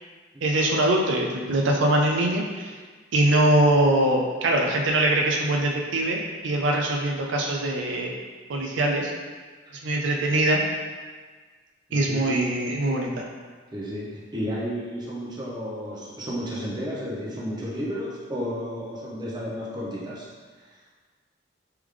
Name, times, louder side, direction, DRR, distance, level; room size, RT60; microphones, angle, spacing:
voice 1, 0.4-2.8 3.1-8.1 8.5-9.1 9.8-10.6 11.9-13.3, right 1 dB, 80° right, 0 dB, 0.5 m, -22 dB
voice 2, 11.9-12.6 13.7-20.3 20.6-20.7, equal, 25° right, -6 dB, 0.8 m, -32 dB
3.5 x 3.4 x 3.3 m, 1.5 s
head